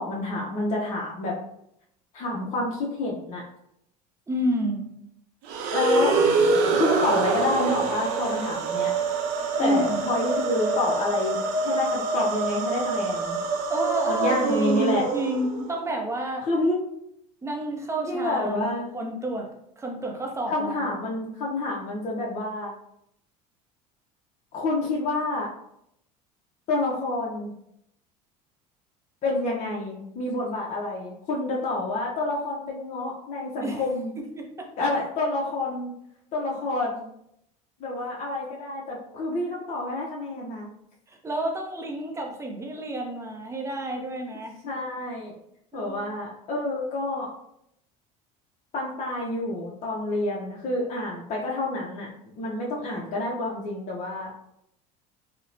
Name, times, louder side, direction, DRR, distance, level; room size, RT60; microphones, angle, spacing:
voice 1, 0.0-1.3 2.1-3.4 5.7-6.1 6.7-8.9 9.6-11.4 11.6-13.4 14.1-15.1 16.5-16.8 18.1-18.9 20.5-22.7 24.5-25.5 26.7-27.5 29.2-34.1 34.8-35.9 36.3-37.1 37.8-40.7 44.6-45.3 45.7-47.3 48.7-52.1 52.4-54.3, left 2 dB, 40° left, -3 dB, 0.6 m, -28 dB
voice 2, 4.3-4.9 9.6-10.0 13.7-16.5 17.4-19.5 19.8-20.9 33.6-33.8 34.2-34.7 41.1-44.5 45.7-46.1, right 1 dB, 15° right, 1 dB, 0.5 m, -29 dB
sound 1, 5.4-15.7, right 3 dB, 70° right, 0.5 m, -25 dB
2.8 x 2.1 x 2.4 m, 0.76 s
supercardioid pair, 90°, 19 cm